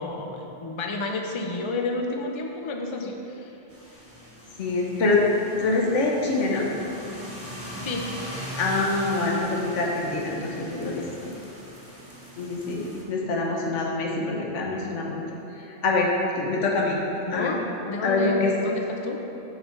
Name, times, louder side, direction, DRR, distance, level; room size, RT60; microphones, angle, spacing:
voice 1, 0.0-3.6 7.8-8.1 17.3-17.6 17.9-19.2, left 2 dB, 40° left, 2 dB, 0.4 m, -30 dB
sound 1, 3.7-13.0, equal, 10° right, 1.1 m, -40 dB
voice 2, 4.6-5.2 5.6-6.7 8.6-11.3 12.4-15.2 15.5-17.0 17.3-17.5 18.0-18.5, left 3 dB, 85° left, -1 dB, 1.3 m, -25 dB
6.6 x 4.3 x 5.9 m, 3.0 s
omnidirectional pair, 1.2 m